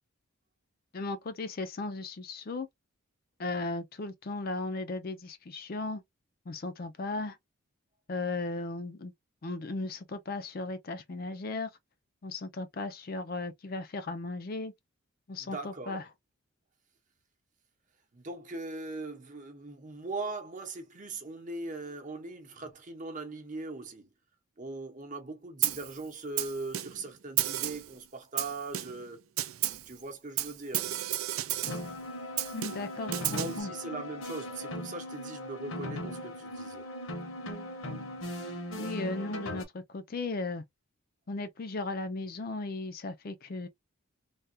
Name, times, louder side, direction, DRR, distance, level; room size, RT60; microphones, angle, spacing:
voice 1, 0.9-2.7 3.4-6.0 6.5-7.4 8.1-9.1 9.4-11.7 12.2-14.7 15.3-16.0 32.5-33.7 38.7-40.6 41.3-43.7, left 3 dB, 45° left, 0.4 m, -36 dB
voice 2, 15.4-16.0 18.1-24.1 24.6-29.3 29.9-30.9 33.3-36.9, right 3 dB, 35° right, 0.8 m, -40 dB
Snare drum, 25.6-25.9 26.4-27.1 27.4-27.9 28.4-29.1 29.4-29.9 30.4-31.9 32.4-33.6, right 14 dB, 75° right, 0.4 m, -32 dB
sound 1, 31.7-39.7, left 1 dB, 70° left, 0.9 m, -39 dB
3.4 x 2.3 x 2.7 m
head